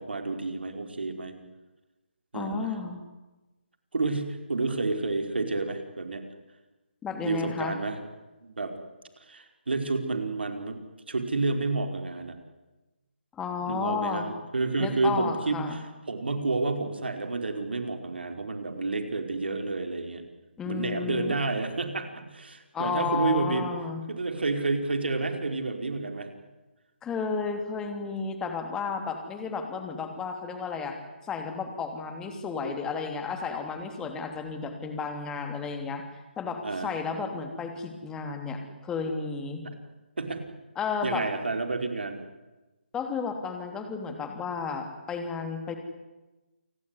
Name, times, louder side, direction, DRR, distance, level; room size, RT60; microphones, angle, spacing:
voice 1, 0.0-1.3 2.3-2.7 3.9-6.2 7.2-8.0 8.4-8.7 9.3-10.8 11.1-12.4 13.7-15.6 16.1-20.2 20.7-23.7 24.1-26.3 36.6-36.9 40.2-40.4 41.0-42.2, right 3 dB, 65° right, 6 dB, 4.7 m, -30 dB
voice 2, 2.3-3.0 7.0-7.8 13.3-14.3 14.8-15.8 20.6-21.3 22.7-24.0 27.0-31.0 31.2-36.0 36.4-39.6 40.7-41.2 42.9-45.8, left 5 dB, 10° left, 5 dB, 3.1 m, -32 dB
28.5 x 19.0 x 10.0 m, 1.1 s
figure-of-eight pair, 145°, 6 cm